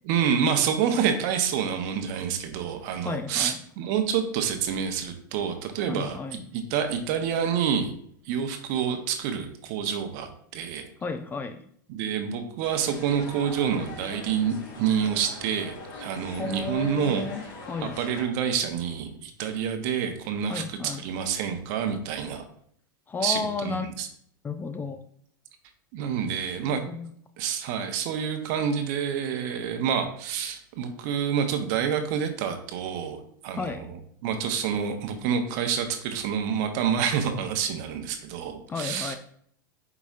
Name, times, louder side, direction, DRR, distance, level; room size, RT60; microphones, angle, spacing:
voice 1, 0.0-6.2 6.5-7.9 8.3-10.9 11.9-17.3 17.8-22.4 23.2-24.1 25.9-26.8 27.4-39.2, right 7 dB, 55° right, 6 dB, 0.8 m, -28 dB
voice 2, 3.0-3.6 5.9-6.4 11.0-11.6 16.3-17.9 20.5-21.0 23.1-23.9 24.4-25.0 26.7-27.1 33.6-33.9 38.7-39.2, left 4 dB, 15° left, 8 dB, 0.3 m, -33 dB
sound 1, 12.6-18.2, left 2 dB, 55° left, 1.9 m, -42 dB
4.9 x 4.0 x 2.4 m, 0.65 s
hypercardioid pair, 105°, 11 cm